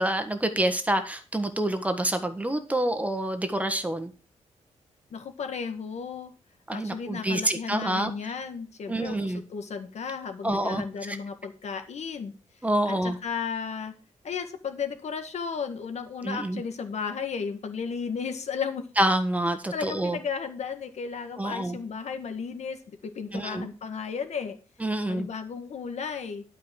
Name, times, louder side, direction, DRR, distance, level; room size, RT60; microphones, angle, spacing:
voice 1, 0.0-4.1 6.7-8.1 8.9-9.4 10.4-11.2 12.6-13.2 16.2-16.6 19.0-20.2 21.4-21.8 23.3-23.7 24.8-25.3, right 1 dB, 10° right, 8 dB, 1.4 m, -27 dB
voice 2, 5.1-6.3 6.7-12.3 12.8-13.9 14.2-18.8 19.7-24.6 25.1-26.4, left 6 dB, 65° left, 8 dB, 1.6 m, -34 dB
11.5 x 5.1 x 6.3 m, 0.34 s
cardioid pair, 105°, 12 cm